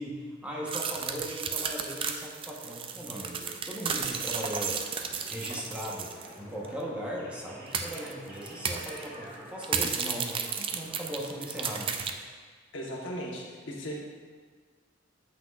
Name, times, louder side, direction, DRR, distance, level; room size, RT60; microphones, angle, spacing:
voice 1, 0.0-4.8 5.3-12.0, equal, 5° right, -4 dB, 0.9 m, -38 dB
sound 1, 0.7-6.3 6.6-6.7 7.7-8.1 8.5-9.1 9.6-12.1, right 6 dB, 30° right, 0.3 m, -33 dB
sound 2, 3.9-12.0, right 1 dB, 45° right, 1.0 m, -50 dB
voice 2, 12.7-13.9, equal, 80° left, -2 dB, 1.1 m, -37 dB
7.7 x 5.7 x 2.4 m, 1.5 s
head